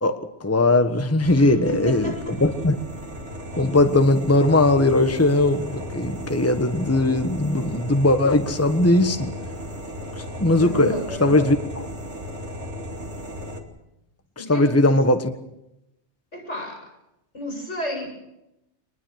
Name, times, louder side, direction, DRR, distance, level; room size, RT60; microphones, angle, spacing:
voice 1, 0.0-2.8 3.5-9.3 10.1-11.6 14.4-15.3, left 2 dB, 15° left, 8 dB, 1.3 m, -19 dB
sound 1, 1.2-13.6, equal, 80° right, 3.1 m, -35 dB
voice 2, 1.4-2.4 10.6-11.5 14.4-14.8 16.3-16.9 17.3-18.1, left 1 dB, 80° left, 3 dB, 7.4 m, -31 dB
24.0 x 21.0 x 6.5 m, 0.86 s
omnidirectional pair, 1.2 m